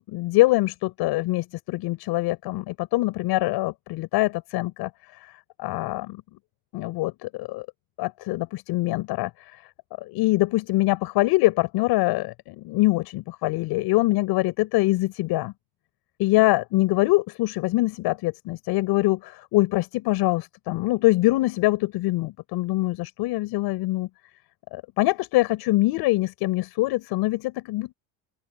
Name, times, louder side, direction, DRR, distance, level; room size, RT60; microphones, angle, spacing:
voice 1, 0.1-4.9 5.6-6.2 6.7-7.7 8.0-9.3 10.0-15.5 16.2-24.1 24.7-27.9, left 19 dB, 70° left, 7.3 m, -24 dB
open air
cardioid pair, 155°, 39 cm